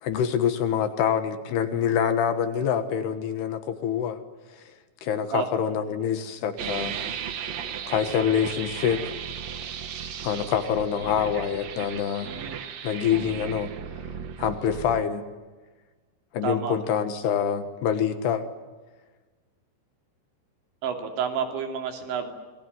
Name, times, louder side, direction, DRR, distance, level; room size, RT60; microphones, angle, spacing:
voice 1, 0.0-4.2 4.5-4.6 5.0-6.9 7.9-9.0 10.2-12.3 12.8-13.7 14.4-15.2 16.3-18.4, left 8 dB, 65° left, 9 dB, 3.2 m, -26 dB
sound 1, 6.6-15.0, right 8 dB, 85° right, 1.4 m, -36 dB
voice 2, 16.4-16.8 20.8-22.3, right 7 dB, 70° right, 5 dB, 5.1 m, -29 dB
27.5 x 21.5 x 9.4 m, 1.3 s
omnidirectional pair, 5.6 m